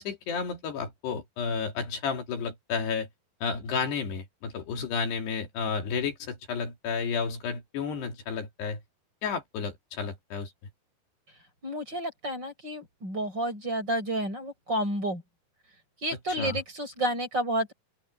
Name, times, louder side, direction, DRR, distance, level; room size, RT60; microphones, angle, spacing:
voice 1, 0.0-3.1 3.4-8.8 9.2-10.5 16.4-16.6, left 5 dB, 70° left, 4.8 m, -32 dB
voice 2, 11.6-15.2 16.0-17.7, right 1 dB, 25° right, 7.1 m, -30 dB
open air
omnidirectional pair, 5.0 m